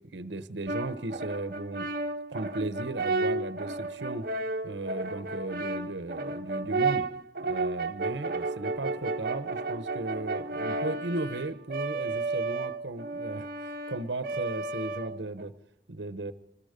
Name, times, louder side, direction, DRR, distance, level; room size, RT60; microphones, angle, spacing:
voice 1, 0.0-1.9 2.3-4.3 4.6-7.1 7.4-15.5 15.9-16.3, right 2 dB, 85° right, 12 dB, 1.1 m, -36 dB
Brass instrument, 0.7-15.5, right 3 dB, 55° right, 1.1 m, -32 dB
26.5 x 20.5 x 5.2 m, 0.67 s
head